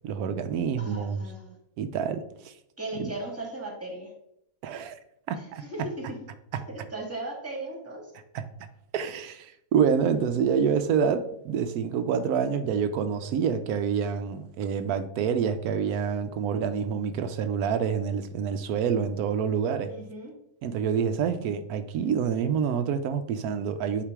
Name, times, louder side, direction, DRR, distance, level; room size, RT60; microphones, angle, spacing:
voice 1, 0.0-1.2 1.8-2.5 3.0-3.1 4.6-4.9 5.3-5.6 6.5-6.6 8.3-8.7 8.9-19.9 20.6-24.0, right 7 dB, 90° right, 9 dB, 1.1 m, -27 dB
voice 2, 0.8-1.6 2.8-4.1 5.4-6.2 6.5-8.1 19.9-20.3, right 1 dB, 10° right, 0 dB, 1.6 m, -37 dB
8.4 x 2.9 x 4.7 m, 0.76 s
omnidirectional pair, 1.5 m